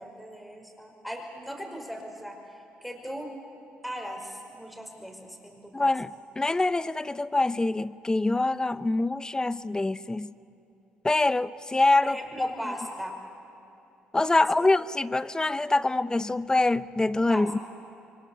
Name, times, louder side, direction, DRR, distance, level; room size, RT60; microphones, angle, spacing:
voice 1, 0.0-3.4 3.8-5.9 12.0-13.2 14.6-14.7 17.3-17.5, equal, ahead, 5.2 m, -38 dB
voice 2, 5.7-6.1 6.4-10.3 11.0-12.5 14.1-17.6, left 2 dB, 20° left, 0.7 m, -25 dB
27.5 x 23.5 x 7.0 m
hypercardioid pair, 60°, 4 cm